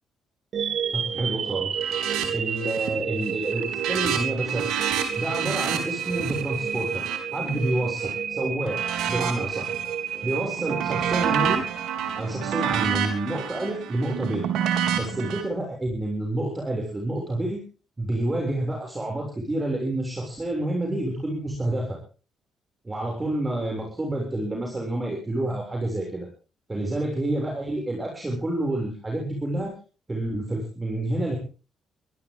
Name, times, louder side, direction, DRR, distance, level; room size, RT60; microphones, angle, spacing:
sound 1, 0.5-12.6, right 8 dB, 60° right, 1.9 m, -31 dB
voice 1, 0.9-1.8 2.3-4.6 5.2-7.0 7.3-8.8 9.0-9.7 10.2-11.6 12.1-14.4 14.9-17.6 18.0-22.0 22.8-26.3 26.7-29.7 30.1-31.4, right 1 dB, 20° right, 0 dB, 6.7 m, -28 dB
sound 2, 1.8-2.3 2.5-3.0 3.3-8.1 8.6-9.9 10.3-15.4, right 9 dB, 85° right, 3.9 m, -29 dB
23.0 x 13.5 x 3.8 m, 0.35 s
cardioid pair, 90°, 0 cm